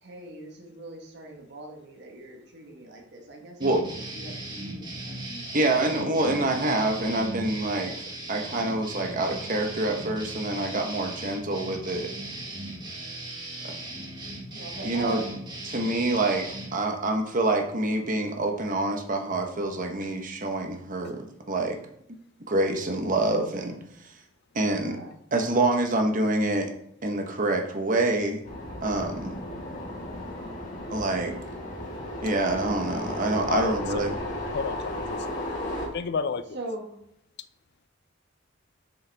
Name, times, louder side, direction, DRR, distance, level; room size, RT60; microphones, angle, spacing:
voice 1, 0.0-3.9 4.1-5.2 14.5-15.3 24.8-25.1 36.5-37.0, right 2 dB, 60° right, 1 dB, 1.3 m, -40 dB
sound 1, 3.6-16.7, right 1 dB, 20° right, 1.6 m, -38 dB
voice 2, 5.5-8.0 8.3-12.1 13.6-13.8 14.8-15.2 15.7-21.8 22.5-23.8 24.5-25.0 25.3-26.7 27.0-28.4 28.8-29.4 30.9-31.4 32.2-34.1, right 2 dB, 40° right, 4 dB, 1.1 m, -26 dB
sound 2, 28.4-35.9, left 1 dB, 40° left, 2.0 m, -34 dB
voice 3, 33.5-34.0 34.5-35.3 35.9-36.4, left 5 dB, 55° left, 12 dB, 0.5 m, -31 dB
7.2 x 6.6 x 3.5 m, 0.74 s
head